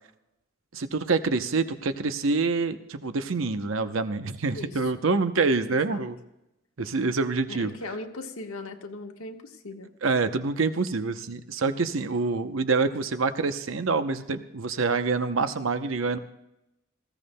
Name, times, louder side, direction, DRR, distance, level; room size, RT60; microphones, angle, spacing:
voice 1, 0.7-6.2 6.8-7.7 10.0-16.2, right 4 dB, 70° right, 10 dB, 0.7 m, -26 dB
voice 2, 4.5-5.0 5.7-6.0 7.5-9.9, left 2 dB, 90° left, 3 dB, 1.3 m, -39 dB
19.0 x 16.0 x 2.2 m, 0.91 s
head